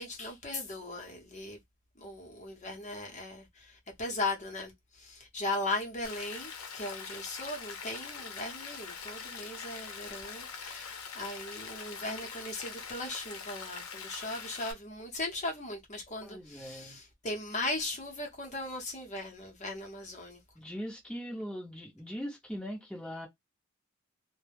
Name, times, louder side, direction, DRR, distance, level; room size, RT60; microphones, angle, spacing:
voice 1, 0.0-1.6 2.0-20.4, left 2 dB, 35° left, 0.8 m, -38 dB
Rain, 6.0-14.7, left 6 dB, 85° left, 0.7 m, -43 dB
voice 2, 16.2-17.0 20.5-23.3, equal, 5° left, 0.8 m, -40 dB
2.1 x 2.1 x 3.2 m
head